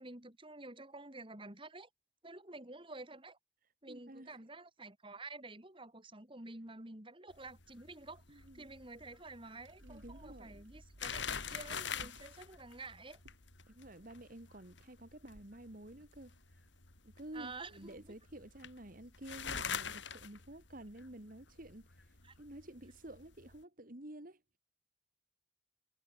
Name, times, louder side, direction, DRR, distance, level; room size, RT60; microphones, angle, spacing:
voice 1, 0.0-1.9 2.2-3.4 3.8-13.2 17.3-18.0 22.2-22.4, right 2 dB, 25° right, 2.7 m, -50 dB
voice 2, 3.9-4.4 8.3-8.7 9.8-10.6 12.0-12.2 13.7-16.6 17.0-24.4, right 1 dB, 45° right, 2.3 m, -51 dB
sound 1, 7.3-23.6, left 7 dB, 65° left, 3.3 m, -46 dB
sound 2, 8.4-18.7, right 1 dB, 80° right, 4.0 m, -62 dB
head